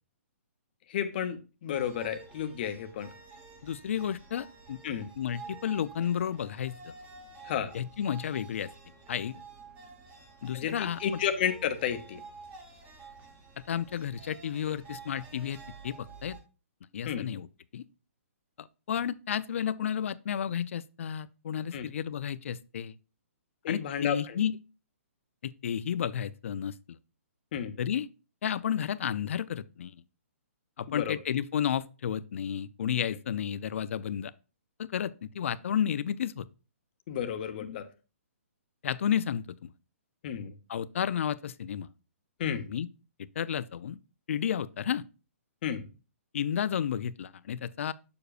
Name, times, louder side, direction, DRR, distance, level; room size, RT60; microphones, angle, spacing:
voice 1, 0.9-3.1 4.8-5.1 7.4-7.7 10.5-12.2 17.1-17.3 21.7-21.8 23.6-24.4 27.5-27.8 30.9-31.2 37.1-37.9 40.2-40.5 42.4-42.7 45.6-45.9, left 9 dB, 40° left, 0.8 m, -32 dB
sound 1, 1.7-16.4, right 4 dB, 20° right, 1.1 m, -50 dB
voice 2, 3.6-4.8 5.2-6.9 7.7-8.7 9.1-9.4 10.4-11.0 13.7-15.6 15.8-16.4 16.9-17.5 17.7-17.8 18.6-22.9 23.7-24.6 25.4-26.7 27.8-28.1 28.4-30.0 30.8-34.3 34.8-36.5 38.8-39.7 40.7-41.9 42.7-42.9 43.4-44.0 44.3-45.0 46.3-47.9, left 9 dB, 60° left, 0.4 m, -32 dB
6.9 x 6.5 x 2.4 m
hypercardioid pair, 150°, 8 cm